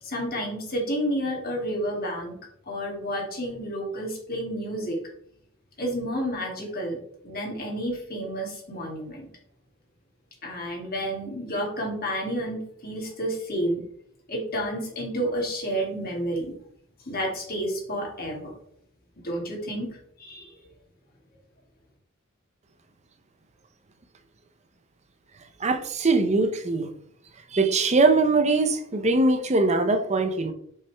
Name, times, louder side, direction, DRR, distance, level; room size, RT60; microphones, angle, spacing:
voice 1, 0.0-2.3 2.7-5.0 5.8-7.0 7.2-9.3 10.4-13.8 14.3-16.5 17.1-18.5 19.2-19.9 20.2-20.7, equal, 45° left, -1 dB, 2.6 m, -30 dB
voice 2, 25.6-26.9 27.5-30.5, right 3 dB, 35° right, 8 dB, 0.7 m, -22 dB
7.4 x 5.8 x 3.4 m, 0.65 s
head